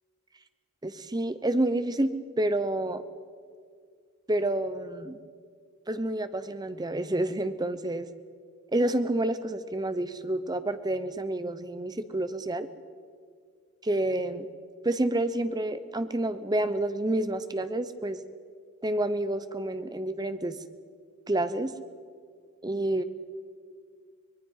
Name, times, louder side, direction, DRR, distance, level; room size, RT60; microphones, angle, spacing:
voice 1, 0.8-3.0 4.3-5.2 5.9-8.1 8.7-12.7 13.8-14.5 14.8-18.2 18.8-20.6 21.3-21.7 22.6-23.0, right 1 dB, 20° right, 11 dB, 0.9 m, -29 dB
24.5 x 20.0 x 5.7 m, 2.1 s
head